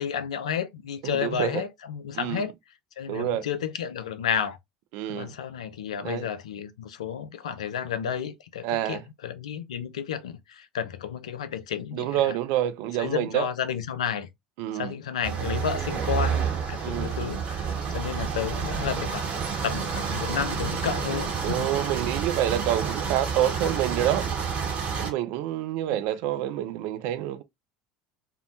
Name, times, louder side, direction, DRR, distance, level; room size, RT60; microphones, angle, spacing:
voice 1, 0.0-2.5 3.0-4.6 5.1-12.3 13.0-14.3 14.7-21.7, left 8 dB, 75° left, 0.4 m, -32 dB
voice 2, 1.0-1.6 2.1-2.5 3.1-3.5 4.9-5.3 6.0-6.3 8.6-9.0 11.9-13.5 14.6-14.9 16.8-17.2 21.4-24.3 25.0-27.4, right 12 dB, 60° right, 0.3 m, -28 dB
sound 1, 15.2-25.1, right 6 dB, 40° right, 0.9 m, -29 dB
2.7 x 2.1 x 2.5 m
figure-of-eight pair, 70°, 3 cm